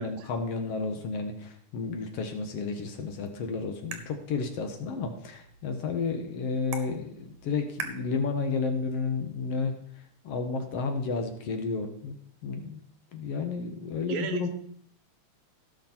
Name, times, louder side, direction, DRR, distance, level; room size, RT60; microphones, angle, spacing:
voice 1, 0.0-9.8 10.2-12.2 12.4-12.8 13.1-14.5, left 4 dB, 60° left, 5 dB, 2.0 m, -32 dB
sound 1, 3.0-9.0, right 5 dB, 65° right, 2.1 m, -45 dB
voice 2, 14.1-14.5, right 6 dB, 85° right, 7 dB, 2.4 m, -34 dB
16.5 x 6.0 x 4.3 m, 0.64 s
omnidirectional pair, 3.4 m